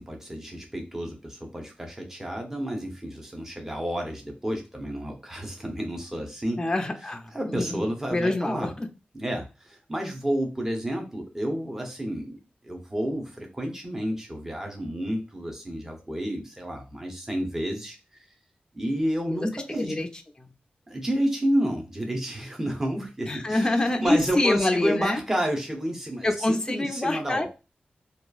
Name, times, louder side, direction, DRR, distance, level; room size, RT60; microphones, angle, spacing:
voice 1, 0.0-6.6 7.3-8.7 9.1-12.4 12.6-18.3 18.7-20.0 20.9-27.5, equal, 15° right, 1 dB, 0.7 m, -30 dB
voice 2, 6.6-8.9 19.3-20.1 20.4-20.5 23.3-25.2 26.2-27.5, left 2 dB, 20° left, 4 dB, 0.4 m, -26 dB
2.9 x 2.3 x 2.3 m, 0.29 s
wide cardioid pair, 105°, 3 cm